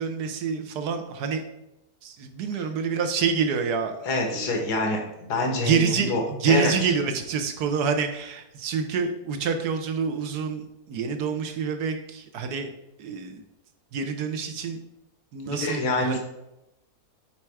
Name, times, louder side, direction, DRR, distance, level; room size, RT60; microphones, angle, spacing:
voice 1, 0.0-1.4 2.0-3.9 4.3-4.5 5.6-12.7 13.0-13.4 13.9-14.8 15.3-16.2, right 6 dB, 80° right, 6 dB, 1.3 m, -27 dB
voice 2, 4.0-5.0 5.3-6.9 15.5-16.2, left 2 dB, 90° left, 1 dB, 1.6 m, -26 dB
5.6 x 4.4 x 4.7 m, 0.89 s
omnidirectional pair, 1.7 m